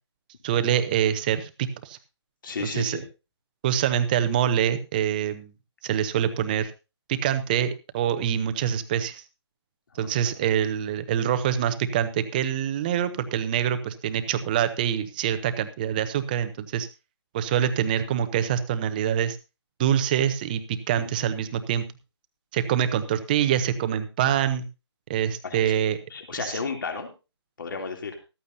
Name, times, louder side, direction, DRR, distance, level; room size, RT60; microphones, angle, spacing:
voice 1, 0.4-2.0 2.6-3.0 3.6-5.5 5.8-6.7 7.1-9.2 9.9-16.9 17.3-19.4 19.8-21.9 22.5-24.7 25.1-26.0, right 9 dB, 20° right, 11 dB, 0.8 m, -25 dB
voice 2, 2.4-3.0 9.9-10.3 21.0-21.1 25.4-25.7 26.1-27.1 27.6-28.2, left 4 dB, 50° left, 4 dB, 3.0 m, -33 dB
14.5 x 14.0 x 2.7 m, 0.29 s
figure-of-eight pair, 155°, 15 cm